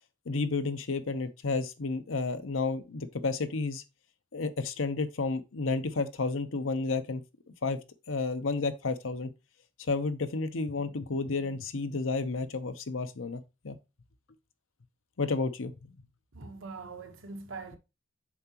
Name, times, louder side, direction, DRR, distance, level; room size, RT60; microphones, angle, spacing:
voice 1, 0.3-3.8 4.3-7.2 7.6-7.8 8.1-9.3 9.9-13.8 15.2-15.7, left 3 dB, 85° left, 0.8 m, -31 dB
voice 2, 16.3-17.8, right 4 dB, 80° right, 1.1 m, -42 dB
7.2 x 4.9 x 2.9 m
head